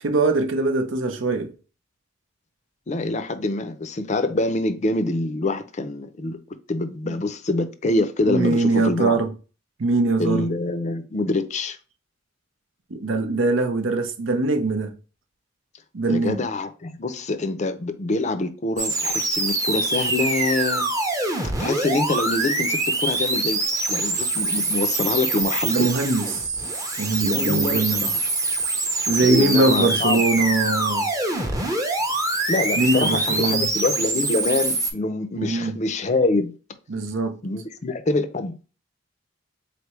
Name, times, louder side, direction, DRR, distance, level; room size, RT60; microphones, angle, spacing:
voice 1, 0.0-1.5 7.0-7.1 8.3-9.3 9.8-10.5 12.9-14.9 15.9-16.4 25.7-26.6 27.0-28.1 29.1-31.0 32.8-33.7 35.4-35.8 36.9-37.4, right 3 dB, 90° right, 0.7 m, -22 dB
voice 2, 2.9-6.4 6.7-9.2 10.2-11.8 16.1-20.9 21.6-23.6 23.9-25.9 27.2-28.2 29.2-30.5 32.5-36.5 37.4-38.7, left 2 dB, 40° left, 0.5 m, -25 dB
sound 1, 18.8-34.9, right 2 dB, 20° right, 0.7 m, -24 dB
4.2 x 3.3 x 3.0 m
head